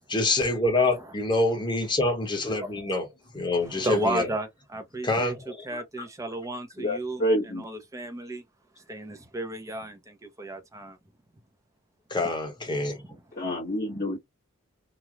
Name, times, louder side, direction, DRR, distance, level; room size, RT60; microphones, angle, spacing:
voice 1, 0.1-3.0 3.3-4.2 5.0-5.8 12.1-13.0, left 2 dB, 20° left, 1.2 m, -26 dB
voice 2, 3.6-8.4 8.8-11.0 13.1-13.2 13.9-14.1, right 2 dB, 15° right, 0.7 m, -34 dB
voice 3, 6.8-7.6 13.3-14.2, equal, 40° left, 1.2 m, -27 dB
3.1 x 2.3 x 2.4 m
head